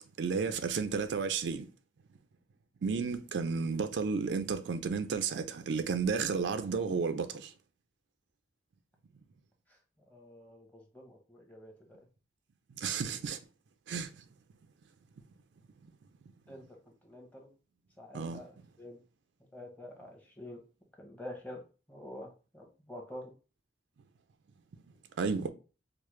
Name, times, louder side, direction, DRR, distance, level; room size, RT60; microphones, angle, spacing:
voice 1, 0.2-1.7 2.8-7.5 12.8-13.4 13.9-14.2 18.1-18.4 25.2-25.5, right 5 dB, 70° right, 0.4 m, -32 dB
voice 2, 10.1-12.0 16.5-17.5 18.0-19.0 19.5-20.6 21.0-21.6 21.9-23.3, left 1 dB, 10° left, 0.8 m, -48 dB
4.7 x 2.1 x 3.1 m
head